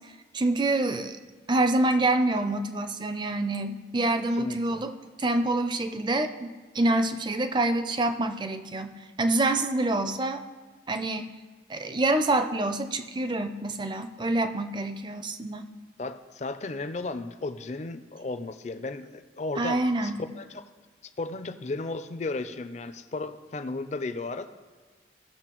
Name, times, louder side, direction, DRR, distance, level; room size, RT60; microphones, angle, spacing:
voice 1, 0.3-1.2 1.5-10.4 10.9-11.3 11.7-15.7 19.6-20.2, right 2 dB, 25° right, 9 dB, 0.4 m, -26 dB
voice 2, 4.4-4.8 16.0-20.6 21.0-24.5, left 3 dB, 40° left, 11 dB, 0.4 m, -34 dB
16.5 x 6.4 x 3.0 m, 1.4 s
head